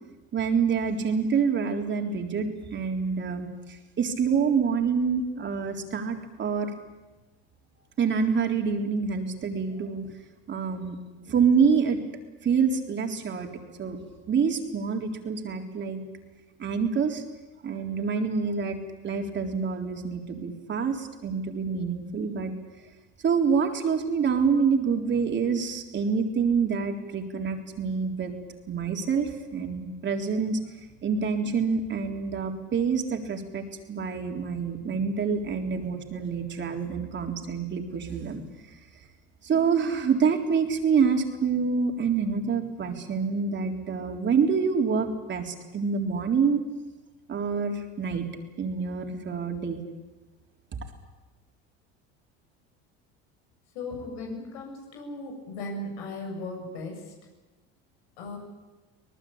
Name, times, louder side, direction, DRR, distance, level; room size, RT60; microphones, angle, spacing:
voice 1, 0.3-6.7 8.0-10.1 10.5-11.0 11.3-12.0 12.4-13.5 13.8-14.0 14.3-16.0 16.6-17.2 17.6-18.8 19.0-22.5 23.2-28.3 28.7-30.6 31.0-38.4 39.4-46.6 47.3-48.3 48.6-49.8, right 5 dB, 35° right, 3 dB, 3.8 m, -26 dB
voice 2, 53.7-57.0 58.2-58.4, left 2 dB, 85° left, 1 dB, 7.5 m, -37 dB
25.0 x 19.0 x 8.7 m, 1.2 s
supercardioid pair, 110°, 31 cm